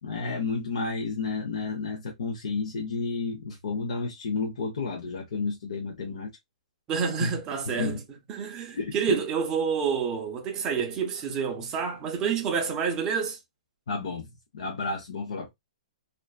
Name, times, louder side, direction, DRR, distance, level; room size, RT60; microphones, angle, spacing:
voice 1, 0.0-6.3 7.2-7.4 7.7-8.0 8.8-9.2 13.9-14.3 14.5-15.5, left 4 dB, 65° left, 0.7 m, -31 dB
voice 2, 6.9-8.0 8.3-13.4, right 6 dB, 15° right, 0.5 m, -28 dB
2.5 x 2.2 x 2.2 m
hypercardioid pair, 170°, 4 cm